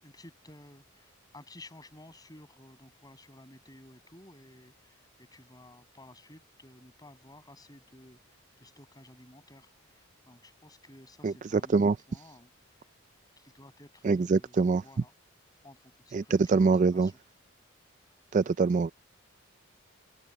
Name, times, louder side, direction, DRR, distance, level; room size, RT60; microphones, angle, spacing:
voice 1, 0.0-12.9 13.4-15.1 15.6-17.2, left 1 dB, 20° left, 6.4 m, -54 dB
voice 2, 11.2-12.0 14.0-14.8 16.1-17.1 18.3-18.9, right 4 dB, 35° right, 0.3 m, -24 dB
head